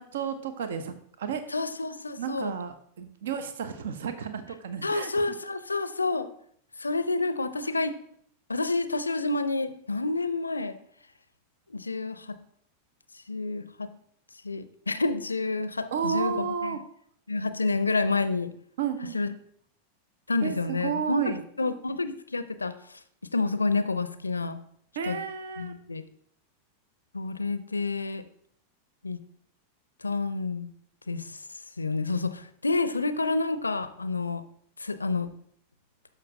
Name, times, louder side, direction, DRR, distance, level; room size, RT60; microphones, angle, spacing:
voice 1, 0.0-1.4 2.2-5.1 7.6-7.7 15.9-16.8 18.8-19.2 20.4-21.4 25.0-25.7, right 7 dB, 60° right, 10 dB, 0.6 m, -32 dB
voice 2, 1.5-2.5 4.8-6.3 6.8-7.9 8.5-10.8 11.7-12.4 13.3-13.9 14.4-16.3 16.6-16.8 17.3-18.5 19.1-19.3 20.3-22.7 23.3-24.6 25.1-25.2 25.6-26.0 27.1-28.2 29.0-29.2 30.0-30.7 31.1-31.4 31.8-34.4 34.8-35.3, left 3 dB, 80° left, 13 dB, 0.4 m, -29 dB
12.5 x 5.4 x 2.7 m, 0.65 s
figure-of-eight pair, 90°, 0 cm